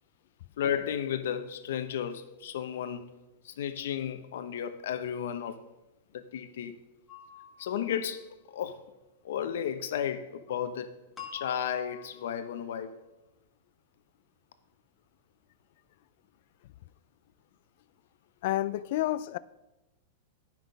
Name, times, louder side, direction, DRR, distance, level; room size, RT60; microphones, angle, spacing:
voice 1, 0.6-3.1 3.4-5.7 6.1-6.8 7.6-8.8 9.2-10.9 11.3-12.9, left 9 dB, 75° left, 0.8 m, -33 dB
sound 1, 7.1-8.2 11.2-12.6, left 8 dB, 10° left, 1.6 m, -46 dB
voice 2, 18.4-19.4, left 15 dB, 60° left, 0.4 m, -29 dB
10.0 x 5.9 x 5.3 m
supercardioid pair, 150°, 0 cm